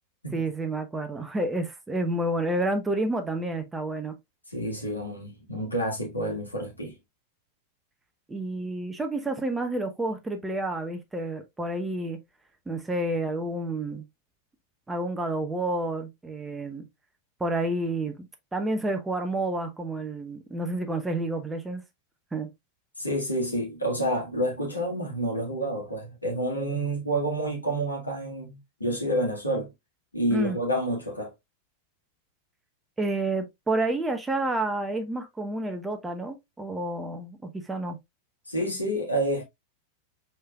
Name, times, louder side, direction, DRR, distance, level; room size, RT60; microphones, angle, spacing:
voice 1, 0.3-4.2 8.3-12.2 12.7-14.0 14.9-16.8 17.4-21.8 22.3-22.5 30.3-30.6 33.0-38.0, right 2 dB, 10° right, 0.9 m, -29 dB
voice 2, 4.5-7.0 23.0-29.7 30.1-31.3 38.5-39.4, right 1 dB, 85° left, 1.7 m, -29 dB
4.9 x 4.4 x 2.3 m
figure-of-eight pair, 90°, 0 cm